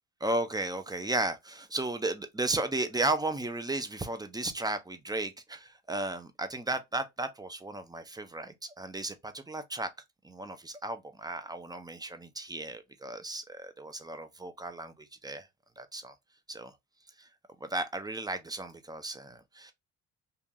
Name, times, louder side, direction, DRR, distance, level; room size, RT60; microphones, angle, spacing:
voice 1, 0.2-9.9 10.2-15.5 15.8-16.1 16.5-16.7 17.2-17.3 17.6-19.7, right 2 dB, 10° right, 0.7 m, -34 dB
2.9 x 2.5 x 3.7 m
supercardioid pair, 70°, 37 cm